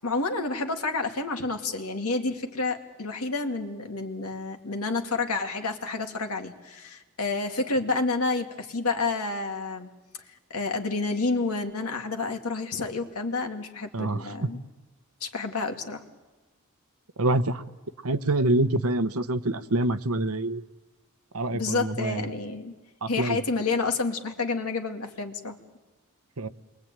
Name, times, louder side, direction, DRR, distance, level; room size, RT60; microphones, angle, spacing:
voice 1, 0.0-9.9 10.5-14.6 15.2-16.0 21.5-22.7 23.1-25.6, left 3 dB, 90° left, 4 dB, 2.3 m, -29 dB
voice 2, 13.9-14.5 17.2-17.6 18.0-20.6 21.3-22.3 23.0-23.4 26.4-26.5, right 2 dB, 85° right, 10 dB, 1.1 m, -26 dB
28.5 x 22.5 x 9.0 m, 1.2 s
head